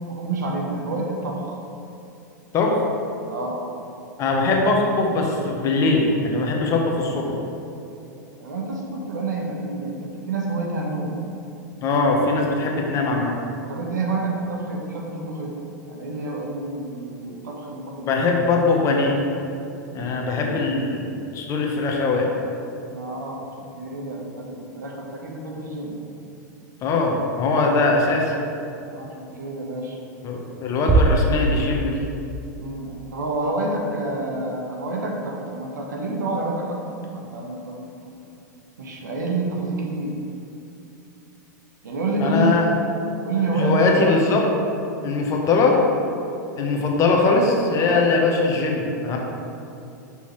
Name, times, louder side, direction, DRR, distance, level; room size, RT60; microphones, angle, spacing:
voice 1, 0.1-1.6 3.3-3.7 8.4-11.1 13.7-15.6 15.9-18.2 22.9-23.5 23.7-26.0 28.9-30.0 32.6-38.1 38.8-40.2 41.8-42.6 43.2-44.2 47.8-48.1, right 2 dB, 70° right, 0 dB, 1.0 m, -28 dB
voice 2, 4.2-7.2 11.8-13.3 18.0-19.2 19.9-21.1 21.3-22.3 26.8-28.3 30.2-32.0 42.2-42.7 43.5-44.4 45.0-45.8 46.6-49.2, left 3 dB, 30° left, 0 dB, 1.0 m, -21 dB
sound 1, 30.9-32.3, right 3 dB, 15° right, 0.4 m, -20 dB
6.1 x 5.5 x 3.1 m, 2.7 s
hypercardioid pair, 100°, 10 cm